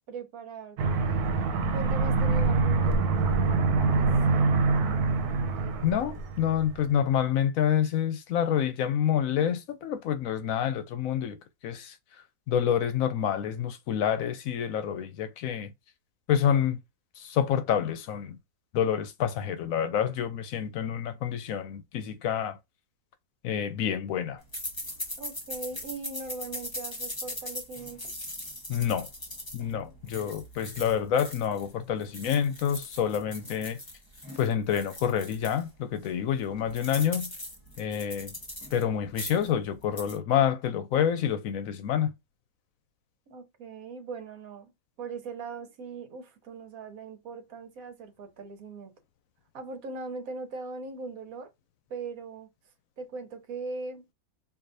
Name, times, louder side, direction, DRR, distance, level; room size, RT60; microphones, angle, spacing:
voice 1, 0.1-1.1 1.7-5.2 5.5-5.9 25.2-28.1 43.3-44.7 45.0-48.9 49.5-51.5 51.9-52.5 53.0-54.1, right 4 dB, 70° right, 1.3 m, -40 dB
Aircraft, 0.8-6.9, right 4 dB, 85° right, 1.2 m, -25 dB
voice 2, 5.8-11.4 11.6-12.0 12.5-15.7 16.3-16.8 17.2-18.4 18.7-22.6 23.4-24.4 28.7-29.1 29.5-33.8 34.4-37.3 37.8-38.4 38.7-42.1, left 9 dB, 70° left, 0.9 m, -28 dB
sound 1, 24.5-31.7 32.0-35.6 36.0-36.1 36.4-38.8 39.1-39.5 39.8-40.2, left 1 dB, 15° left, 1.1 m, -40 dB
4.7 x 2.6 x 2.6 m
omnidirectional pair, 1.6 m